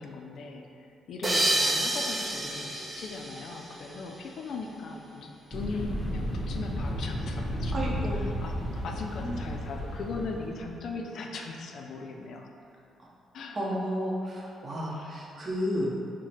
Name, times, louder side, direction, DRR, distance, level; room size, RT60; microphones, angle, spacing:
voice 1, 0.0-8.0 8.4-12.5 13.3-13.6 15.0-15.1, left 3 dB, 65° left, 2 dB, 0.4 m, -39 dB
sound 1, 1.2-4.3, right 1 dB, 20° right, 0.4 m, -29 dB
sound 2, 5.5-10.8, equal, 10° left, 0.9 m, -33 dB
voice 2, 7.7-8.2 9.2-9.4 13.0-13.1 13.5-15.9, equal, 40° right, -4 dB, 0.8 m, -32 dB
4.7 x 2.1 x 4.3 m, 2.6 s
cardioid pair, 90°, 0 cm